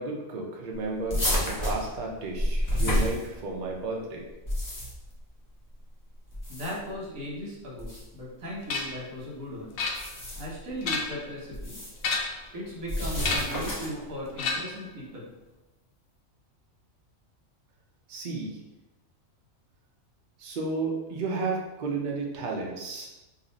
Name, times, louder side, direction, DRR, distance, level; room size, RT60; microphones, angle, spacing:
voice 1, 0.0-4.3 18.1-18.6 20.4-23.1, right 3 dB, 55° right, -1 dB, 0.6 m, -32 dB
sound 1, 1.1-3.7 4.3-5.1 6.3-7.0 7.8-8.0 9.8-10.6 11.5-12.0 12.9-14.0, left 1 dB, 25° left, 0.4 m, -29 dB
voice 2, 6.5-9.7 10.4-11.8 12.5-15.3, equal, 80° right, -4 dB, 1.4 m, -37 dB
sound 2, 8.7-9.0 9.8-10.4 10.7-11.3 12.0-12.5 13.2-13.6 14.4-14.9, left 3 dB, 65° left, 0.7 m, -30 dB
2.7 x 2.4 x 3.9 m, 1.0 s
omnidirectional pair, 1.4 m